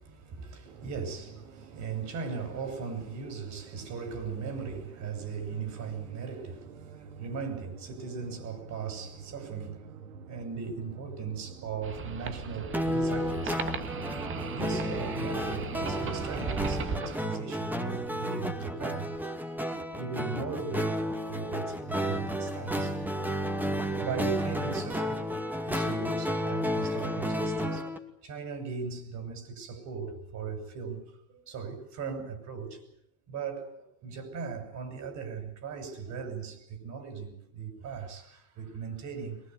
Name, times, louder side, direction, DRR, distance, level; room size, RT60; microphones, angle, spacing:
voice 1, 0.1-9.9 10.3-13.6 14.5-19.1 20.0-22.9 23.7-25.4 25.6-27.9 28.2-31.0 31.3-32.8 33.3-39.4, right 5 dB, 45° right, 7.0 m, -38 dB
sound 1, 0.7-16.3, right 6 dB, 85° right, 2.4 m, -47 dB
sound 2, 11.8-17.2, right 5 dB, 30° right, 2.1 m, -37 dB
sound 3, 12.7-28.0, equal, 5° right, 2.4 m, -32 dB
23.5 x 20.0 x 9.5 m
hypercardioid pair, 100°, 40 cm